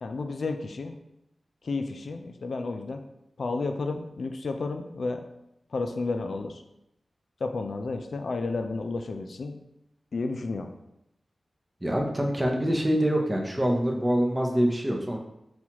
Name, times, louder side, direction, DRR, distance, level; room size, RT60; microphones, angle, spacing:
voice 1, 0.0-1.0 1.6-3.0 3.4-5.3 5.7-6.6 7.4-9.6 10.1-10.7, left 3 dB, 70° left, 6 dB, 0.3 m, -31 dB
voice 2, 11.8-15.2, equal, 15° right, 1 dB, 0.6 m, -25 dB
5.8 x 2.3 x 2.8 m, 0.86 s
wide cardioid pair, 90°, 0 cm